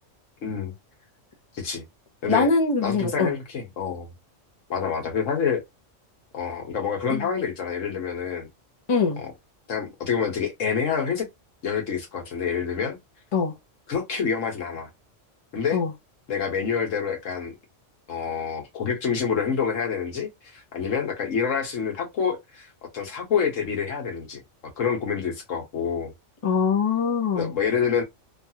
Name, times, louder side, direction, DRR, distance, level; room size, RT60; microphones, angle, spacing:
voice 1, 0.4-0.7 1.5-1.8 2.2-2.5 2.8-4.1 4.7-5.6 6.3-8.5 9.2-9.3 9.7-11.3 11.6-13.0 13.9-14.9 15.5-15.8 16.3-17.5 18.1-22.7 22.9-24.4 24.8-26.1 27.3-28.0, left 6 dB, 85° left, 1.5 m, -27 dB
voice 2, 2.3-3.3 7.1-7.2 8.9-9.2 13.3-13.5 15.7-15.9 26.4-27.5, left 5 dB, 30° left, 0.7 m, -22 dB
3.2 x 2.4 x 2.8 m
omnidirectional pair, 1.3 m